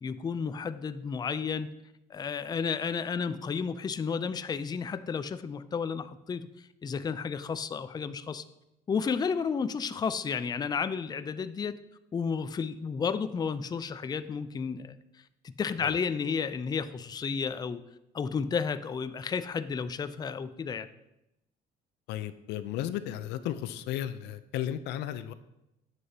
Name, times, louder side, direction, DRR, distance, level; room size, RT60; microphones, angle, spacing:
voice 1, 0.0-1.7 2.1-6.5 6.8-8.4 8.9-11.8 12.1-15.0 15.4-17.8 18.1-20.9, left 6 dB, 25° left, 12 dB, 0.4 m, -32 dB
voice 2, 22.1-25.3, left 11 dB, 90° left, 12 dB, 0.5 m, -34 dB
9.5 x 7.7 x 2.8 m, 0.88 s
cardioid pair, 110°, 17 cm